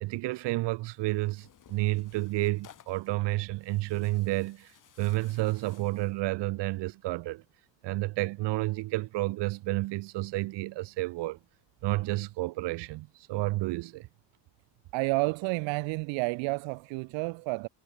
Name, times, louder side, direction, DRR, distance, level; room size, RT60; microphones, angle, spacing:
voice 1, 0.0-7.4 7.8-11.4 11.8-14.1, right 19 dB, 70° right, 1.1 m, -31 dB
Tearing, 0.9-6.2, left 10 dB, 45° left, 5.3 m, -59 dB
voice 2, 14.9-17.7, right 28 dB, 85° right, 0.6 m, -30 dB
cardioid pair, 135°, 44 cm